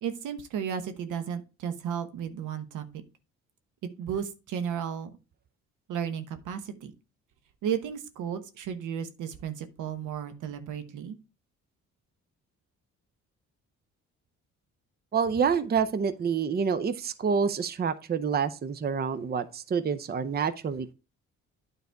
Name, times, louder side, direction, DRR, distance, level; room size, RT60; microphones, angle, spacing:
voice 1, 0.0-2.9 3.8-5.1 5.9-6.9 7.6-11.2, right 8 dB, 85° right, 9 dB, 1.1 m, -34 dB
voice 2, 15.1-20.9, right 6 dB, 30° right, 12 dB, 0.6 m, -27 dB
9.4 x 4.1 x 4.5 m, 0.31 s
cardioid pair, 90°, 30 cm